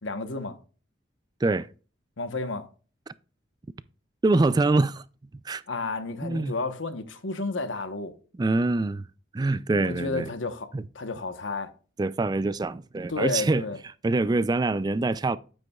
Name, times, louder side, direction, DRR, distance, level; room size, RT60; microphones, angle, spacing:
voice 1, 0.0-0.6 2.2-2.7 5.7-8.1 9.7-11.7 13.1-13.8, left 3 dB, 85° left, 1.0 m, -32 dB
voice 2, 4.2-5.0 5.4-5.6 6.2-6.5 8.4-9.0 9.3-10.3 10.7-10.8 12.0-13.6 14.0-15.4, right 2 dB, 20° right, 0.3 m, -24 dB
9.1 x 8.3 x 2.3 m
head